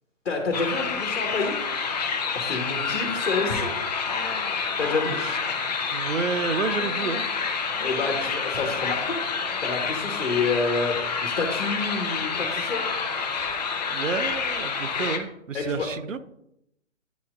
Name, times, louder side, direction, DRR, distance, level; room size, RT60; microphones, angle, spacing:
voice 1, 0.2-1.6 2.3-3.8 4.1-4.5 4.8-5.2 7.8-9.2 9.6-10.9 11.2-12.8 14.9-15.1 15.5-15.9, left 4 dB, 55° left, 2 dB, 1.3 m, -28 dB
sound 1, 0.5-15.2, left 5 dB, 35° left, 0.7 m, -28 dB
voice 2, 5.9-7.2 13.9-16.2, right 5 dB, 85° right, 12 dB, 0.6 m, -30 dB
9.2 x 4.3 x 2.5 m, 0.81 s
figure-of-eight pair, 135°, 38 cm